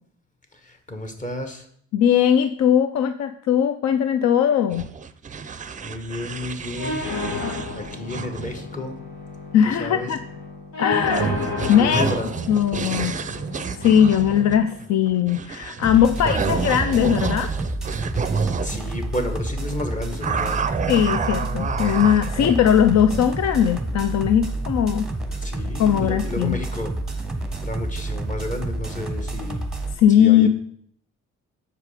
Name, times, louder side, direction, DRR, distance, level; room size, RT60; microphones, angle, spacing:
voice 1, 0.5-1.7 5.8-7.1 7.4-8.9 9.6-10.1 11.8-12.3 18.6-20.7 25.4-26.9 27.6-29.6 30.2-30.5, left 1 dB, 25° left, 5 dB, 1.2 m, -31 dB
voice 2, 1.9-4.9 9.5-10.2 10.8-12.1 12.5-13.2 13.8-17.5 20.9-25.1 25.8-26.6 30.0-30.5, left 9 dB, 60° left, 10 dB, 0.5 m, -19 dB
sound 1, 4.7-8.7 10.9-18.8 20.2-23.4, right 6 dB, 25° right, 0.5 m, -29 dB
sound 2, 6.8-14.8, left 2 dB, 80° left, 2.7 m, -32 dB
sound 3, 15.8-29.9, right 2 dB, ahead, 1.0 m, -29 dB
6.7 x 4.9 x 4.9 m, 0.64 s
cardioid pair, 90°, 30 cm